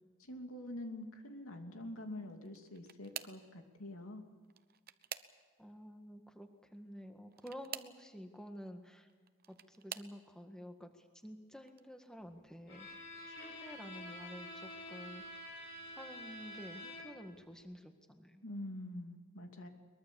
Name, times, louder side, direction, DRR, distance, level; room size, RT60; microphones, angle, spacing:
voice 1, 0.3-4.2 18.4-19.7, left 1 dB, 90° left, 4 dB, 2.9 m, -45 dB
sound 1, 2.4-3.5 4.4-5.7 7.3-8.0 9.1-10.2 10.9-11.3 11.7-11.8 13.2-13.3, right 10 dB, 45° right, 0.8 m, -48 dB
voice 2, 5.6-9.1 9.5-10.9 11.2-12.9 13.3-15.2 16.0-18.4, equal, 5° left, 5 dB, 1.7 m, -50 dB
Bowed string instrument, 12.7-17.3, left 1 dB, 70° left, 7.9 m, -48 dB
22.5 x 22.0 x 7.2 m, 1.5 s
head